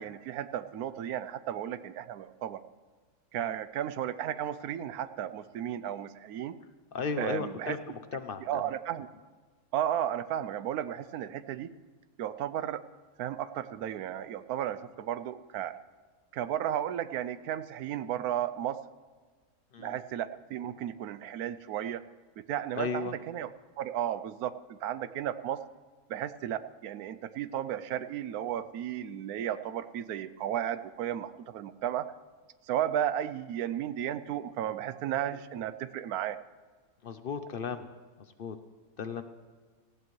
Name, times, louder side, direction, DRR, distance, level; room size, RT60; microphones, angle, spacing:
voice 1, 0.0-2.6 3.3-6.5 7.2-7.8 8.4-9.1 9.7-11.7 12.2-12.8 13.2-15.8 16.3-18.8 19.8-22.0 22.4-23.5 23.8-25.6 26.1-32.1 32.7-36.4, right 10 dB, 80° right, 13 dB, 1.1 m, -34 dB
voice 2, 6.9-8.6 19.7-20.0 22.7-23.1 37.0-37.9 38.2-38.6 39.0-39.2, left 5 dB, 60° left, 9 dB, 0.6 m, -35 dB
18.5 x 15.0 x 3.1 m, 1.5 s
omnidirectional pair, 1.6 m